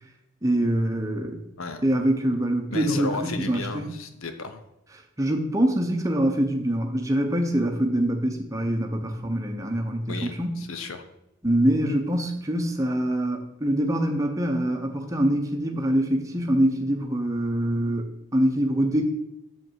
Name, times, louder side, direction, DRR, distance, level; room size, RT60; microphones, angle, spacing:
voice 1, 0.4-1.4 1.8-3.9 5.2-10.6 11.4-19.0, right 1 dB, 15° right, 3 dB, 0.8 m, -24 dB
voice 2, 2.7-4.6 10.1-11.1, left 3 dB, 75° left, 8 dB, 0.8 m, -34 dB
7.5 x 5.2 x 4.6 m, 0.88 s
head